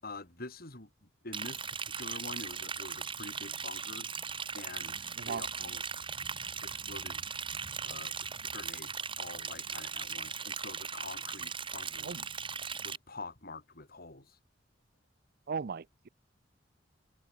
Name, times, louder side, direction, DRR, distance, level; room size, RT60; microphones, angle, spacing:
voice 1, 0.0-4.1 4.5-5.8 6.6-7.2 7.8-8.1 8.5-12.2 12.8-14.4, left 3 dB, 55° left, 6.9 m, -46 dB
Liquid, 1.3-13.0, right 6 dB, 30° right, 3.3 m, -39 dB
voice 2, 15.5-16.1, right 5 dB, 55° right, 0.5 m, -37 dB
head